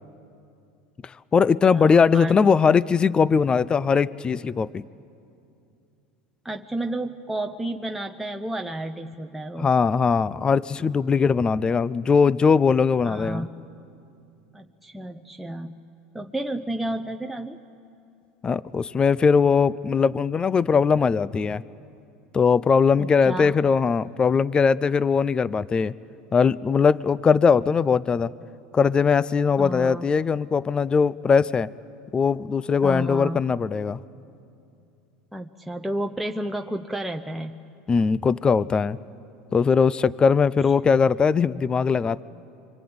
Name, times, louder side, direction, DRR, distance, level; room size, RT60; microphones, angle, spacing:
voice 1, 1.0-4.8 9.6-13.5 18.4-21.6 22.3-25.9 26.3-28.3 28.7-31.7 32.1-34.0 37.9-39.0 39.5-42.2, left 5 dB, 25° left, 19 dB, 0.5 m, -20 dB
voice 2, 1.7-2.4 6.4-9.7 13.0-13.5 14.5-15.8 16.1-17.6 23.0-23.6 29.6-30.0 32.8-33.4 35.3-37.6, right 1 dB, 5° right, 3 dB, 0.8 m, -31 dB
26.0 x 24.0 x 8.8 m, 2.6 s
supercardioid pair, 110°, 4 cm